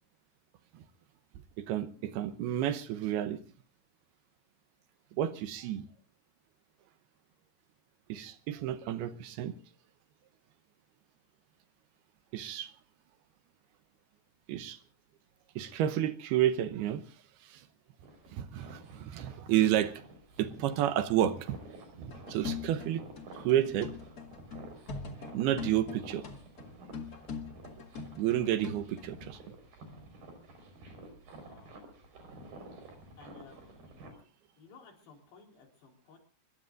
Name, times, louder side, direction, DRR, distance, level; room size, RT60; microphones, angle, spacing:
voice 1, 1.6-3.4 5.2-5.9 8.1-9.6 12.3-12.7 14.5-14.8 15.6-17.0 17.4-17.6 18.3-20.0 20.4-21.6 22.0-23.1 23.3-23.9 25.3-26.3 28.2-29.4, right 11 dB, 75° right, 11 dB, 2.7 m, -30 dB
Walking in snow x, 18.0-34.1, right 2 dB, 60° right, 6.3 m, -51 dB
sound 1, 22.1-29.1, left 5 dB, 50° left, 1.1 m, -42 dB
voice 2, 33.2-34.1 34.6-36.2, left 5 dB, 75° left, 1 dB, 6.2 m, -57 dB
24.5 x 22.0 x 2.6 m, 0.40 s
omnidirectional pair, 4.9 m